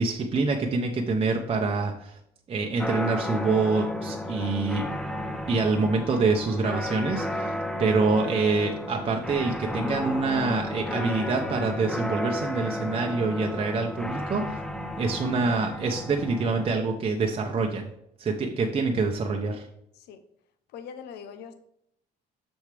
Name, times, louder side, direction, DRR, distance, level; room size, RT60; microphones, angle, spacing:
voice 1, 0.0-2.2 2.5-4.8 5.5-14.6 15.0-17.9 18.2-19.7, right 4 dB, 35° right, 1 dB, 0.8 m, -26 dB
sound 1, 2.8-16.7, left 1 dB, 5° left, 0.6 m, -33 dB
voice 2, 20.7-21.5, left 7 dB, 75° left, 10 dB, 0.7 m, -42 dB
6.5 x 6.3 x 3.4 m, 0.75 s
cardioid pair, 110°, 17 cm